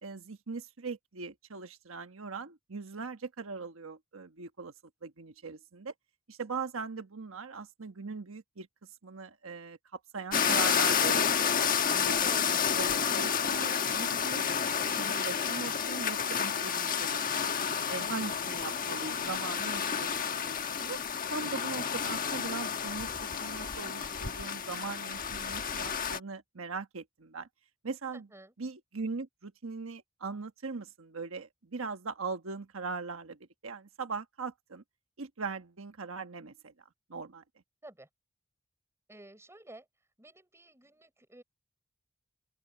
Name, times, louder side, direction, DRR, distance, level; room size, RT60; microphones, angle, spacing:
voice 1, 0.0-4.7 5.0-5.9 6.3-8.7 9.0-12.4 12.8-14.5 14.9-17.5 17.9-21.0 21.3-27.5 27.8-28.3 28.6-33.4 33.6-34.8 35.2-36.7 37.1-37.4, right 4 dB, 85° right, 1.2 m, -40 dB
sound 1, 10.3-26.2, left 7 dB, 45° left, 1.2 m, -30 dB
voice 2, 12.2-12.6 28.1-28.5 37.8-38.1 39.1-39.9 40.2-41.4, right 1 dB, 15° right, 5.7 m, -51 dB
open air
head